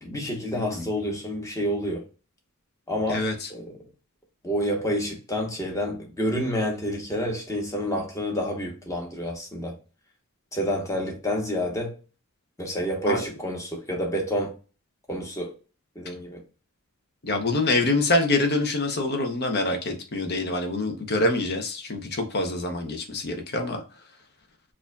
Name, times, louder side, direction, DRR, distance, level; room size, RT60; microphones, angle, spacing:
voice 1, 0.0-2.0 2.9-3.7 4.4-9.8 10.5-11.9 12.6-14.5 15.1-15.5 16.0-16.4, equal, 15° left, 0.9 m, -28 dB
voice 2, 0.5-0.8 3.1-3.5 13.1-13.3 17.2-23.8, left 2 dB, 45° left, 0.8 m, -25 dB
4.8 x 2.6 x 2.2 m
head